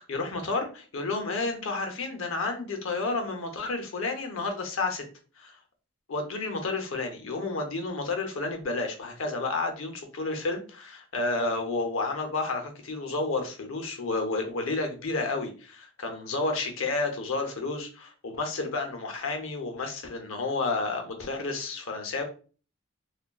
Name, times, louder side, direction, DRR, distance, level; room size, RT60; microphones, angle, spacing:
voice 1, 0.1-5.0 5.4-5.6 6.1-22.2, left 3 dB, 80° left, 5 dB, 0.7 m, -31 dB
3.5 x 2.3 x 2.3 m, 0.37 s
head